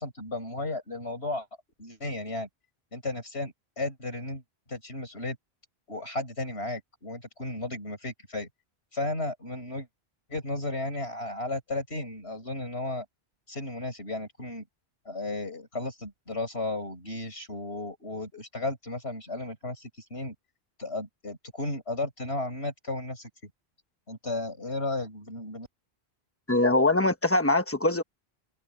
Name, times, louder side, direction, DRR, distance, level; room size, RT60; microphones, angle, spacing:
voice 1, 0.0-1.5 1.8-2.5 2.9-4.4 4.7-5.4 5.9-8.5 8.9-9.9 10.3-13.1 13.5-14.6 15.1-20.4 20.8-23.5 24.1-25.7, left 2 dB, 75° left, 6.9 m, -34 dB
voice 2, 26.5-28.0, left 2 dB, 15° left, 1.0 m, -23 dB
omnidirectional pair, 1.1 m